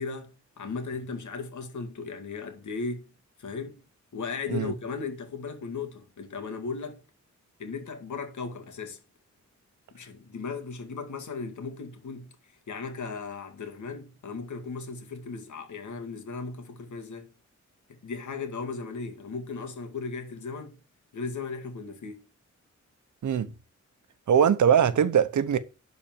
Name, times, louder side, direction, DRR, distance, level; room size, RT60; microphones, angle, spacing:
voice 1, 0.0-3.1 3.4-3.8 4.1-7.0 7.6-9.0 9.9-12.3 12.7-17.3 17.9-20.8 21.1-22.2, left 4 dB, 80° left, 2.1 m, -36 dB
voice 2, 24.3-25.6, right 8 dB, 80° right, 1.0 m, -21 dB
11.5 x 4.3 x 7.4 m
wide cardioid pair, 150°, 29 cm